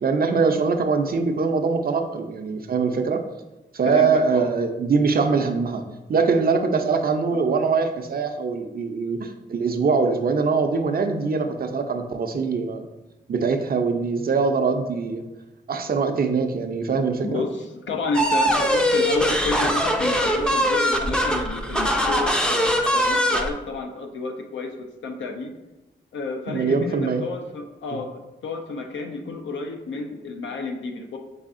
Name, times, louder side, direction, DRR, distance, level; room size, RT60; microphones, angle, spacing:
voice 1, 0.0-3.2 3.7-5.8 6.1-12.8 13.3-15.2 15.7-17.4 26.5-27.2, right 4 dB, 50° right, 6 dB, 0.5 m, -23 dB
voice 2, 3.8-4.5 7.3-7.4 17.2-25.5 26.1-31.2, left 3 dB, 85° left, 4 dB, 0.6 m, -30 dB
sound 1, 18.1-23.5, equal, 5° left, 0.4 m, -21 dB
5.5 x 3.4 x 2.5 m, 1.0 s
cardioid pair, 85°, 19 cm